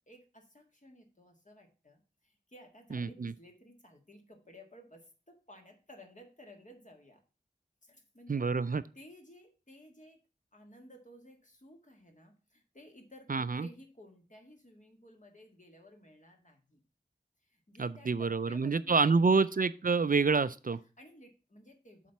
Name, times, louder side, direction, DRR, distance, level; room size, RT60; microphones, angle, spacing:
voice 1, 0.1-7.2 7.8-8.5 8.9-10.2 10.5-16.8 17.4-19.3 21.0-22.1, left 1 dB, 45° left, 2 dB, 1.8 m, -56 dB
voice 2, 2.9-3.3 8.3-8.8 13.3-13.7 17.8-20.8, right 4 dB, 55° right, 15 dB, 0.4 m, -28 dB
7.2 x 4.4 x 5.7 m, 0.34 s
wide cardioid pair, 45°, 18 cm